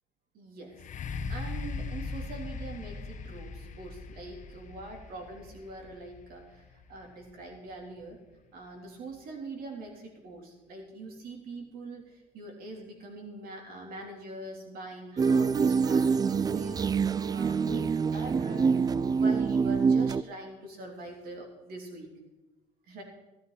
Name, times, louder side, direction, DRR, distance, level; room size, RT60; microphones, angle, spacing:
voice 1, 0.3-8.2 8.5-18.8 19.2-22.1 22.9-23.0, right 2 dB, 65° right, 2 dB, 3.4 m, -43 dB
sound 1, 0.7-8.5 9.1-9.2, left 4 dB, 50° left, 1.0 m, -40 dB
sound 2, 15.2-20.2, right 5 dB, 25° right, 0.3 m, -25 dB
13.5 x 13.0 x 4.2 m, 1.0 s
cardioid pair, 95°, 16 cm